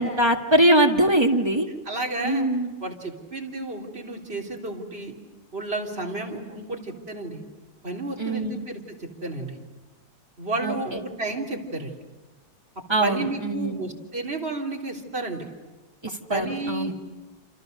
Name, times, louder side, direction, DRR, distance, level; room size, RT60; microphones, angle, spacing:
voice 1, 0.0-1.7 2.2-2.7 8.2-8.6 10.6-11.0 12.9-13.8 16.0-16.9, right 1 dB, 15° right, 2 dB, 1.6 m, -22 dB
voice 2, 1.9-2.5 2.8-5.2 5.5-7.4 7.8-9.6 10.4-11.9 13.0-15.5 16.3-16.9, right 2 dB, 30° right, -1 dB, 3.6 m, -31 dB
28.5 x 27.5 x 6.6 m, 1.2 s
omnidirectional pair, 2.2 m